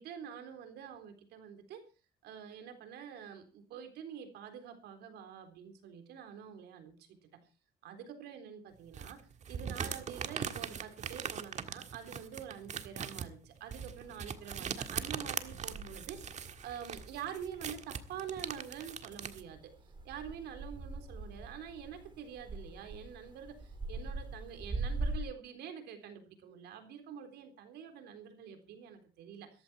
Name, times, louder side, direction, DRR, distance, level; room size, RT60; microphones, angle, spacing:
voice 1, 0.0-1.9 2.2-7.4 7.8-19.7 20.0-29.6, right 8 dB, 80° right, 7 dB, 3.8 m, -47 dB
sound 1, 8.9-19.4, right 7 dB, 45° right, 1.7 m, -41 dB
sound 2, 13.7-25.2, right 2 dB, 30° right, 3.5 m, -44 dB
15.5 x 14.5 x 4.4 m, 0.34 s
cardioid pair, 110°, 17 cm